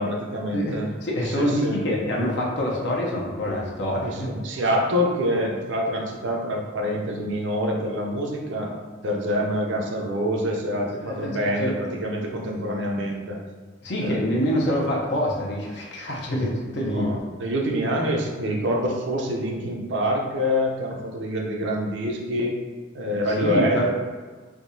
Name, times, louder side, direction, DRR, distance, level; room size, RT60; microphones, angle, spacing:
voice 1, 0.0-0.9 1.4-1.8 4.0-8.8 9.0-13.4 14.0-14.2 16.9-22.6 22.9-23.9, equal, 65° right, 0 dB, 0.5 m, -26 dB
voice 2, 1.0-4.3 11.0-11.8 13.8-17.1 23.3-23.9, equal, 60° left, -2 dB, 0.7 m, -26 dB
3.5 x 2.7 x 2.6 m, 1.4 s
head